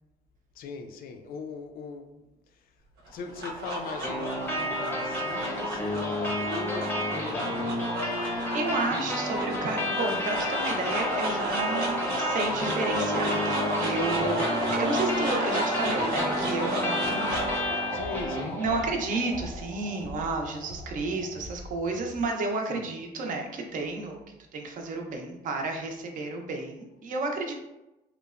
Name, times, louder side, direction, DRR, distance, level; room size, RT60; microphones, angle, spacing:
voice 1, 0.5-2.2 2.5-2.7 3.1-8.1 17.9-18.6 22.7-22.9, left 4 dB, 60° left, 0.4 m, -40 dB
sound 1, 3.1-21.4, equal, 85° right, 0.8 m, -32 dB
sound 2, 4.0-19.0, left 1 dB, 10° left, 0.6 m, -32 dB
voice 2, 8.3-18.0 18.6-27.5, right 3 dB, 50° right, 0.5 m, -32 dB
sound 3, 17.2-22.3, left 1 dB, 90° left, 0.7 m, -44 dB
2.9 x 2.0 x 2.4 m
cardioid pair, 110°, 17 cm